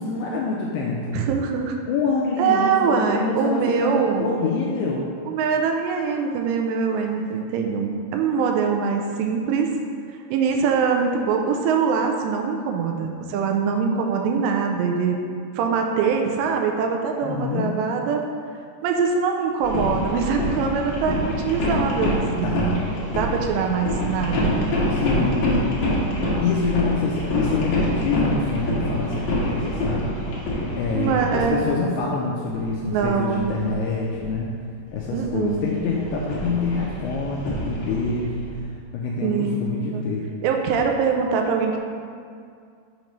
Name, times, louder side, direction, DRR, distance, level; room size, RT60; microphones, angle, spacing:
voice 1, 0.0-1.2 1.9-5.1 17.2-17.7 22.4-22.8 24.9-25.8 26.4-30.1 30.7-34.5 34.9-38.5 38.9-40.3, left 4 dB, 85° left, -3 dB, 2.3 m, -26 dB
voice 2, 1.1-1.8 2.4-4.3 5.3-9.7 10.3-15.2 15.6-18.2 18.8-22.8 23.2-24.5 30.9-31.6 32.9-33.6 35.1-35.7 39.2-39.6 39.9-40.0 40.4-41.8, right 6 dB, 85° right, 2 dB, 2.7 m, -23 dB
sound 1, 19.6-31.7 32.5-34.6 34.9-38.6, left 1 dB, 70° left, 1.7 m, -26 dB
7.0 x 3.1 x 5.2 m, 2.3 s
omnidirectional pair, 5.0 m